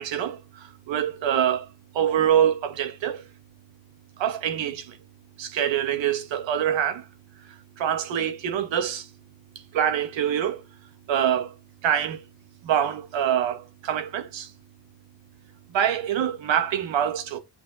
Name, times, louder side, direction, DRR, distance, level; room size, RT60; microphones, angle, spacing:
voice 1, 0.0-1.7 1.9-3.2 4.2-5.0 5.4-7.1 7.8-9.1 9.7-10.6 11.1-11.5 11.8-12.2 12.6-14.5 15.7-17.4, right 9 dB, 90° right, 2.6 m, -25 dB
8.3 x 5.5 x 6.8 m
cardioid pair, 170°, 44 cm